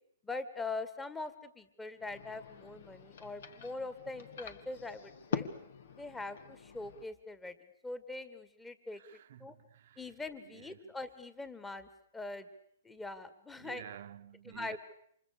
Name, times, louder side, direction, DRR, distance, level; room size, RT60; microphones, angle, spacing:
voice 1, 0.2-5.5 6.0-7.5 7.8-9.0 9.4-9.5 10.0-12.5 12.8-13.8 14.5-14.8, left 3 dB, 10° left, 1.9 m, -42 dB
sound 1, 2.0-7.0, left 6 dB, 65° left, 1.9 m, -44 dB
voice 2, 9.0-10.0 10.4-10.9 13.6-14.8, right 11 dB, 60° right, 1.1 m, -51 dB
29.0 x 25.5 x 6.8 m
hypercardioid pair, 130°, 0 cm